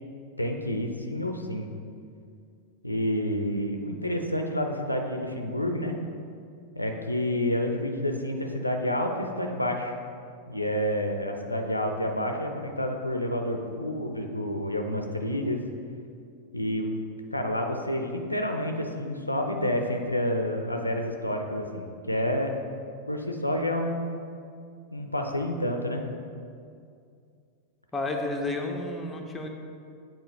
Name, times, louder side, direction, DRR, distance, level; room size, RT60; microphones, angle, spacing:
voice 1, 0.4-1.7 2.8-6.0 6.7-9.9 10.5-15.6 16.5-16.9 17.3-22.5 23.1-24.1 24.9-26.0, left 1 dB, 85° left, 4 dB, 0.5 m, -29 dB
voice 2, 27.9-29.5, left 2 dB, 10° left, 2 dB, 0.6 m, -31 dB
7.9 x 4.2 x 3.2 m, 2.4 s
figure-of-eight pair, 90°, 0 cm